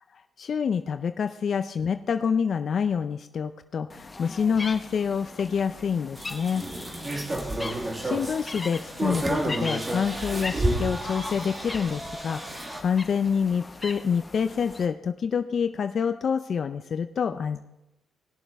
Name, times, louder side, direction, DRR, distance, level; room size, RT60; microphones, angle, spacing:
voice 1, 0.4-6.6 7.6-17.7, left 6 dB, 50° left, 9 dB, 0.4 m, -27 dB
sound 1, 3.9-14.9, left 3 dB, 25° left, 0.9 m, -40 dB
sound 2, 6.2-12.8, right 1 dB, 20° right, 1.4 m, -31 dB
18.5 x 7.2 x 3.4 m, 0.92 s
cardioid pair, 90°, 0 cm